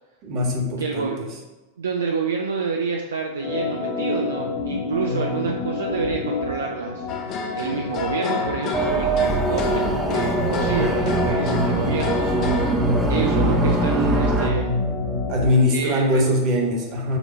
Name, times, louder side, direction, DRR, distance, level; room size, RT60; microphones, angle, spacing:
voice 1, 0.2-1.3 5.1-5.5 15.3-17.2, left 1 dB, 40° right, 0 dB, 1.4 m, -22 dB
voice 2, 0.8-1.2 1.8-7.1 7.6-12.6 13.1-14.7 15.7-16.3, right 5 dB, 65° right, 1 dB, 0.5 m, -28 dB
Organ, 3.4-15.5, left 3 dB, 50° left, 1.2 m, -27 dB
sound 1, 7.1-12.7, left 5 dB, 35° left, 0.6 m, -30 dB
sound 2, 8.7-14.5, right 3 dB, 15° right, 0.6 m, -23 dB
7.1 x 2.7 x 5.4 m, 1.1 s
figure-of-eight pair, 90°, 0 cm